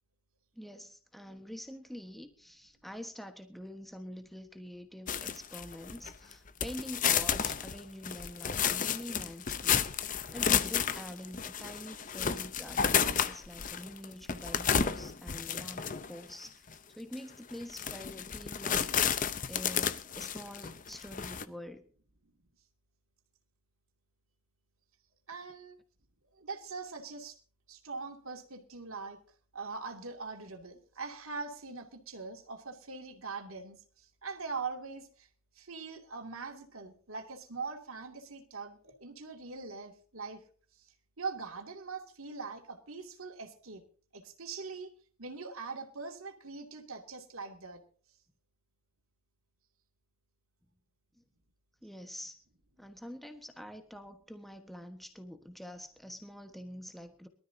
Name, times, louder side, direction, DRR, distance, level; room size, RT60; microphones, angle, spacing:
voice 1, 0.5-9.9 10.3-19.2 19.5-21.8 51.2-51.3 51.8-52.4 52.8-57.3, equal, ahead, 6 dB, 1.2 m, -46 dB
sound 1, 5.1-6.3 6.6-16.2 16.7-16.8 17.1-17.2 17.6-21.4, left 7 dB, 35° left, 0.7 m, -31 dB
voice 2, 25.3-25.8 26.3-27.4 27.7-29.2 29.5-35.3 35.6-40.4 40.7-43.8 44.1-44.9 45.2-47.8, right 4 dB, 80° right, 4 dB, 2.5 m, -42 dB
23.0 x 13.0 x 2.8 m, 0.42 s
head